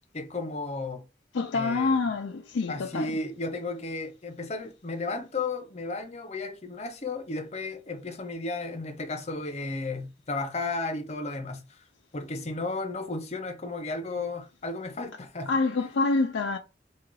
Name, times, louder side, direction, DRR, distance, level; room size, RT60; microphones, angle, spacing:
voice 1, 0.1-1.0 1.5-2.0 2.7-11.6 12.1-15.5 15.8-15.9, left 3 dB, 35° left, 0.7 m, -34 dB
voice 2, 1.3-3.1 15.5-16.6, left 3 dB, 85° left, 0.4 m, -26 dB
3.7 x 2.4 x 4.6 m
head